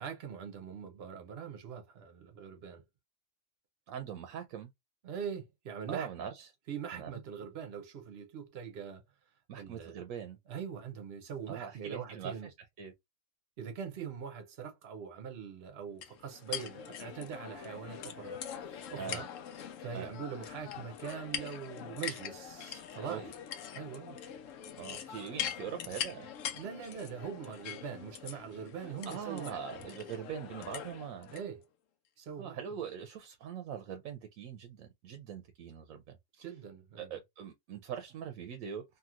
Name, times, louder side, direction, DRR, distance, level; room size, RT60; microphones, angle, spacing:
voice 1, 0.0-2.8 5.0-6.3 6.7-9.0 9.5-10.0 10.5-12.5 13.6-19.3 19.8-23.3 23.7-24.2 26.5-29.8 31.3-31.6 32.2-32.6 36.4-37.2, right 7 dB, 60° right, 0.9 m, -42 dB
voice 2, 3.9-4.7 5.9-6.5 6.9-7.1 9.5-10.4 11.5-12.5 12.8-12.9 19.0-19.2 19.9-20.1 23.1-23.2 24.8-26.3 28.8-31.3 32.4-36.0 36.4-36.5 37.0-38.8, right 8 dB, 90° right, 1.0 m, -42 dB
sound 1, 16.0-31.4, left 9 dB, 80° left, 1.0 m, -43 dB
2.9 x 2.7 x 2.4 m
omnidirectional pair, 1.4 m